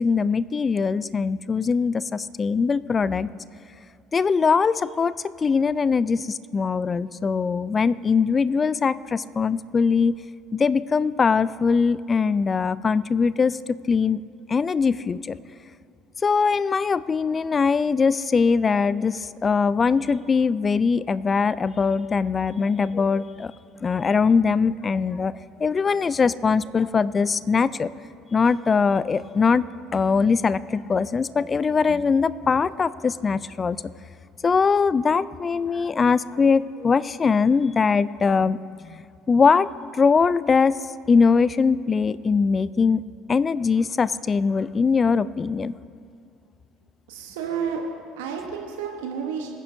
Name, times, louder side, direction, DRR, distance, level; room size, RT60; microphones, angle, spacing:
voice 1, 0.0-3.3 4.1-10.2 10.5-14.2 14.5-15.4 16.2-23.5 23.8-27.9 28.3-29.6 29.9-33.8 34.4-40.8 41.1-43.0 43.3-45.8, left 5 dB, 30° left, 18 dB, 0.3 m, -21 dB
voice 2, 47.1-49.5, right 6 dB, 70° right, 2 dB, 1.0 m, -31 dB
20.0 x 10.0 x 2.6 m, 2.5 s
figure-of-eight pair, 60°, 0 cm